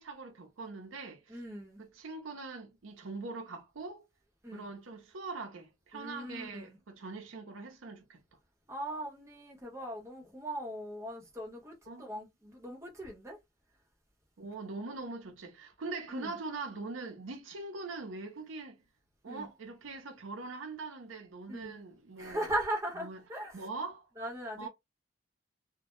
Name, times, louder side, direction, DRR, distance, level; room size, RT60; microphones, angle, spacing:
voice 1, 0.0-1.4 1.8-4.0 4.5-8.2 11.9-12.1 14.4-18.8 19.2-22.5 23.0-23.2 23.5-24.1 24.6-24.7, right 3 dB, 85° right, 0.6 m, -42 dB
voice 2, 1.3-1.8 4.4-4.7 5.9-6.8 8.7-13.4 16.1-16.4 19.3-19.5 21.5-21.7 22.2-23.7 24.2-24.7, right 1 dB, 15° right, 0.7 m, -39 dB
2.1 x 2.0 x 3.0 m
head